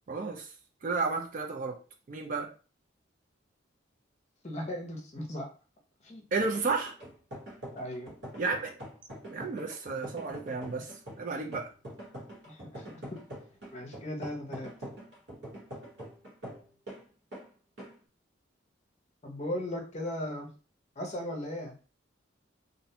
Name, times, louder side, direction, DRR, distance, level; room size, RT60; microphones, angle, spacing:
voice 1, 0.1-0.5 0.8-1.8 2.1-2.5 6.3-7.0 8.4-8.7 9.3-11.7, right 4 dB, 40° right, 0.4 m, -32 dB
voice 2, 4.4-5.5 6.0-6.3 7.7-8.1 12.5-12.8 13.7-14.7 19.2-20.5 21.0-21.8, left 1 dB, 35° left, 0.6 m, -37 dB
sound 1, 6.4-17.0 17.3-17.5 17.8-18.0, right 1 dB, 60° right, 1.1 m, -44 dB
2.4 x 2.1 x 2.7 m
head